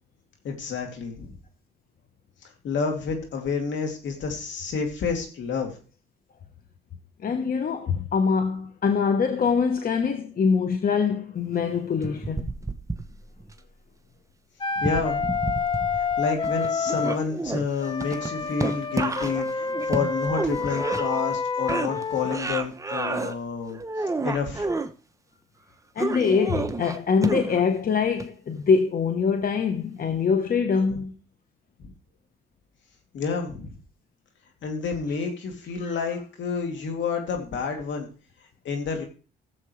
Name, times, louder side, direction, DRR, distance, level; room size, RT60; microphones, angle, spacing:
voice 1, 0.4-1.3 2.6-5.7 14.8-15.3 16.2-24.7 31.8-31.9 33.1-33.7 34.6-38.1 38.6-39.0, left 5 dB, 70° left, 2.7 m, -29 dB
voice 2, 7.2-12.5 25.9-31.1 35.8-36.0, left 5 dB, 45° left, 1.1 m, -24 dB
sound 1, 12.0-13.5 14.8-16.2 16.4-21.4 21.7-23.3 23.7-24.9 26.0-27.7 28.2-28.3, right 3 dB, 15° right, 0.8 m, -30 dB
Wind instrument woodwind instrument, 14.6-17.2 17.8-22.4, left 5 dB, 25° left, 0.7 m, -28 dB
16.5 x 7.4 x 3.3 m
cardioid pair, 90°, 20 cm